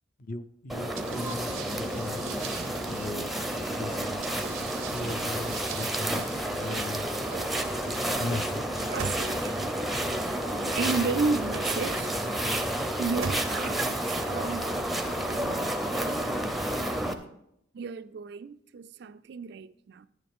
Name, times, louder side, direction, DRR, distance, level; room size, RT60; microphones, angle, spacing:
voice 1, 0.2-2.5 2.9-3.4 3.7-4.3 4.9-7.2 8.2-8.9, left 2 dB, 40° left, 0.5 m, -38 dB
sound 1, 0.7-17.1, right 1 dB, ahead, 0.5 m, -30 dB
sound 2, 1.0-12.2 12.9-14.0, right 6 dB, 90° right, 0.7 m, -42 dB
voice 2, 5.6-6.1 6.6-7.0 7.3-7.6 8.9-9.6 10.5-12.2 13.0-16.1 17.7-20.1, right 4 dB, 55° right, 0.3 m, -34 dB
10.5 x 9.2 x 3.6 m
head